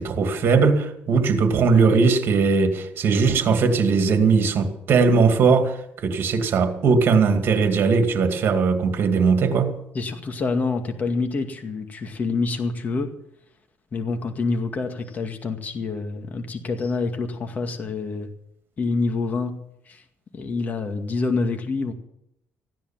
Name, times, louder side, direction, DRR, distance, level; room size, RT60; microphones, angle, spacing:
voice 1, 0.0-9.7, right 5 dB, 55° right, 2.4 m, -19 dB
voice 2, 9.9-13.1 13.9-18.3 18.8-19.6 19.9-20.0 20.3-21.9, left 3 dB, 35° left, 2.1 m, -27 dB
15.5 x 10.5 x 7.4 m
cardioid pair, 105°, 5 cm